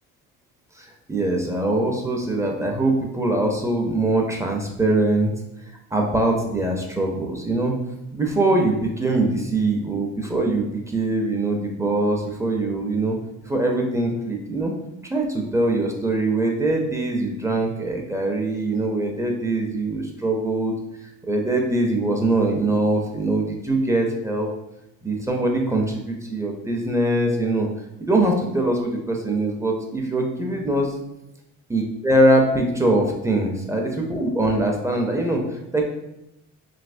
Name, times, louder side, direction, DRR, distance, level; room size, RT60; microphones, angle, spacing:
voice 1, 0.7-5.3 5.9-7.7 8.1-13.2 13.4-14.7 15.0-20.7 21.0-24.5 25.0-27.7 28.0-30.9 31.7-35.8, right 2 dB, 10° right, 0 dB, 0.5 m, -22 dB
3.2 x 2.9 x 2.5 m, 0.88 s
cardioid pair, 105°, 31 cm